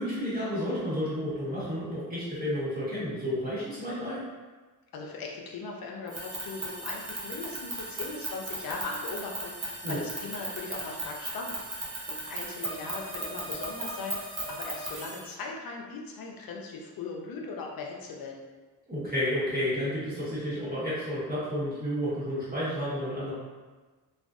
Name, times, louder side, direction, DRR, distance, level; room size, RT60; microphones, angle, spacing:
voice 1, 0.0-4.2 9.8-10.0 18.9-23.3, equal, 25° right, -11 dB, 1.2 m, -31 dB
voice 2, 4.9-18.4, left 3 dB, 60° left, 0 dB, 0.5 m, -39 dB
sound 1, 6.1-15.3, right 2 dB, 40° right, 0.7 m, -37 dB
2.5 x 2.3 x 2.3 m, 1.3 s
cardioid pair, 75°, 39 cm